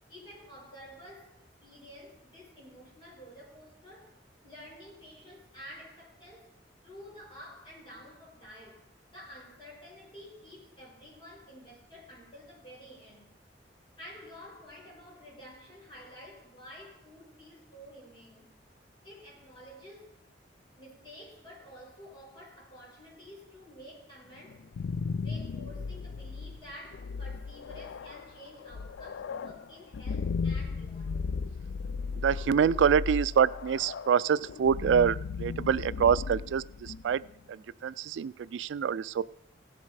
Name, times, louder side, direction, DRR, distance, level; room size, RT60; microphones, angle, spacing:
voice 1, 0.1-6.5 6.8-13.3 14.0-18.5 19.0-20.2 20.8-24.7 25.2-31.2, equal, 30° left, 5.3 m, -50 dB
sound 1, 24.5-37.3, left 5 dB, 85° left, 0.4 m, -36 dB
voice 2, 32.1-37.2 37.5-39.2, right 7 dB, 80° right, 0.3 m, -26 dB
17.0 x 7.4 x 4.8 m
head